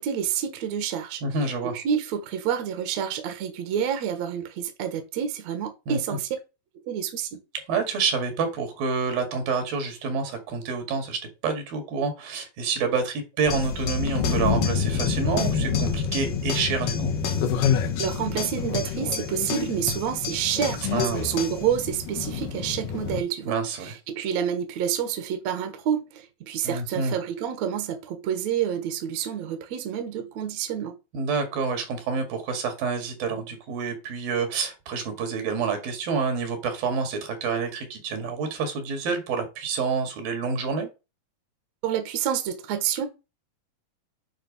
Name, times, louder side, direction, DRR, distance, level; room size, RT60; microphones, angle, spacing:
voice 1, 0.0-1.2 1.7-6.3 6.9-7.4 18.0-30.9 41.8-43.1, right 8 dB, 60° right, 2.1 m, -28 dB
voice 2, 1.2-1.8 5.9-6.2 7.5-17.1 20.8-21.3 23.5-24.0 26.6-27.1 31.1-40.9, right 5 dB, 75° right, 3.6 m, -28 dB
sound 1, 13.5-23.2, left 6 dB, 70° left, 2.7 m, -28 dB
sound 2, 13.5-21.7, left 6 dB, 55° left, 2.0 m, -34 dB
9.2 x 3.9 x 5.2 m
omnidirectional pair, 4.1 m